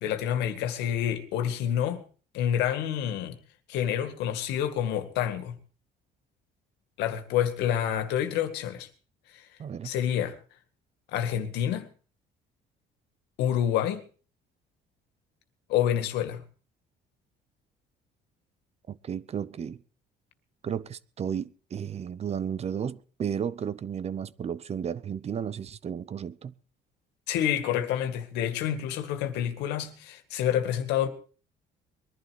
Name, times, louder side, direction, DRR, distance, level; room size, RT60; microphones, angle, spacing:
voice 1, 0.0-2.0 2.3-3.4 3.7-5.6 7.0-8.9 9.8-10.4 11.1-11.9 13.4-14.0 15.7-16.4 27.3-31.1, left 10 dB, 90° left, 2.0 m, -28 dB
voice 2, 9.6-9.9 18.9-19.8 20.6-26.5, right 8 dB, 40° right, 0.7 m, -33 dB
21.5 x 11.5 x 4.7 m
cardioid pair, 110°, 17 cm